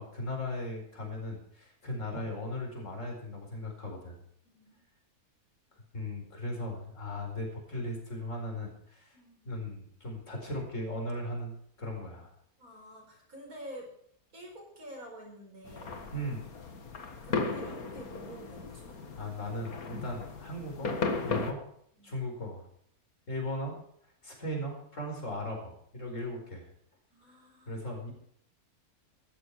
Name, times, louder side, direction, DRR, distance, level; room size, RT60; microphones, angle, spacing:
voice 1, 0.0-4.2 5.9-9.2 9.4-12.3 16.1-16.4 19.2-21.0 21.2-21.7 22.0-22.6 23.3-23.7 24.2-26.7 27.7-28.1, left 1 dB, 55° left, 1 dB, 5.0 m, -37 dB
voice 2, 4.4-4.8 9.1-9.4 12.6-13.9 14.3-16.1 17.2-19.3 21.9-22.1 27.1-27.8, right 1 dB, 70° right, 1 dB, 5.2 m, -48 dB
sound 1, 15.7-21.5, left 4 dB, 70° left, 2.2 m, -36 dB
15.5 x 13.0 x 4.8 m, 0.68 s
omnidirectional pair, 1.6 m